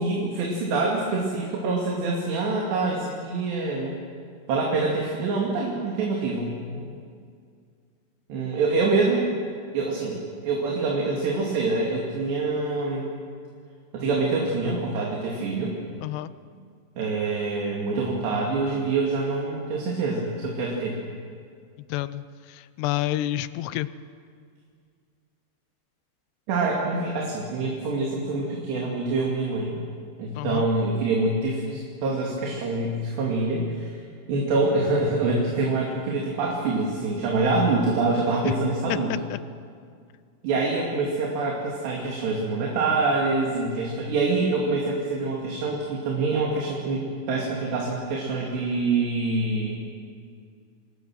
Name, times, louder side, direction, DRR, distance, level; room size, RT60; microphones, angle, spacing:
voice 1, 0.0-4.0 4.5-7.0 8.3-9.3 9.7-13.1 13.9-15.8 17.0-21.0 26.5-29.8 30.2-34.0 34.3-39.1 40.4-49.8, right 3 dB, 75° right, -2 dB, 4.7 m, -25 dB
voice 2, 16.0-16.3 21.9-23.9 30.4-30.7 38.4-38.5 38.9-39.4, left 15 dB, 80° left, 15 dB, 2.7 m, -29 dB
28.0 x 20.5 x 6.4 m, 2.2 s
omnidirectional pair, 5.0 m